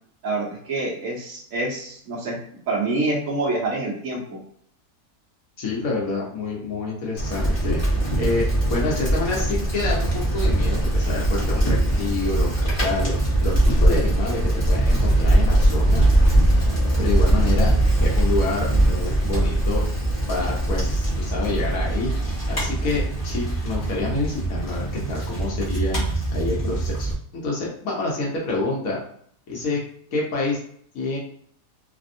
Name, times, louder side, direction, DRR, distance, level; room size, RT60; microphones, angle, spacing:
voice 1, 0.2-2.4 2.7-4.4, right 2 dB, 60° right, -4 dB, 1.1 m, -26 dB
voice 2, 5.6-10.1 10.3-13.1 13.4-16.1 17.0-17.7 18.0-19.8 20.3-22.1 22.5-27.1 27.4-29.0 29.5-29.8 30.1-30.6 30.9-31.2, left 3 dB, 65° left, -3 dB, 1.2 m, -27 dB
Bicycle, 7.2-27.1, right 1 dB, 25° left, 0.8 m, -21 dB
3.3 x 2.2 x 2.6 m, 0.62 s
omnidirectional pair, 1.7 m